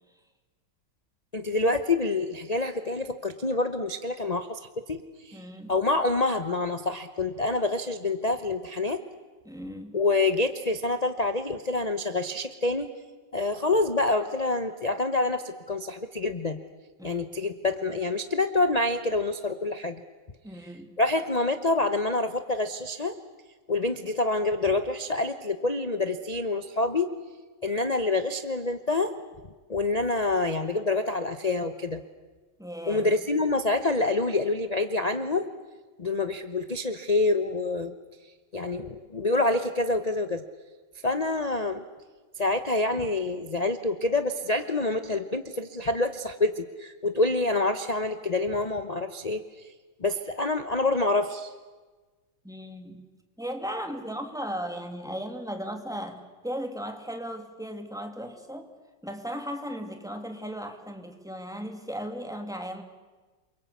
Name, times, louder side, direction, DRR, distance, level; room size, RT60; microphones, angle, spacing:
voice 1, 1.3-4.6 4.9-5.4 5.7-9.0 9.9-12.9 13.3-16.6 17.0-20.0 21.0-23.2 23.7-27.1 27.6-29.1 29.7-32.0 32.9-35.5 36.0-37.9 38.5-40.4 41.0-41.8 42.4-49.7 50.0-51.5, left 2 dB, 30° left, 9 dB, 0.8 m, -27 dB
voice 2, 5.3-5.7 9.5-10.0 17.0-17.2 20.4-20.9 32.6-33.1 52.4-53.0 53.4-58.7 59.0-62.8, equal, ahead, 5 dB, 2.2 m, -36 dB
28.5 x 23.5 x 8.5 m, 1.3 s
omnidirectional pair, 2.0 m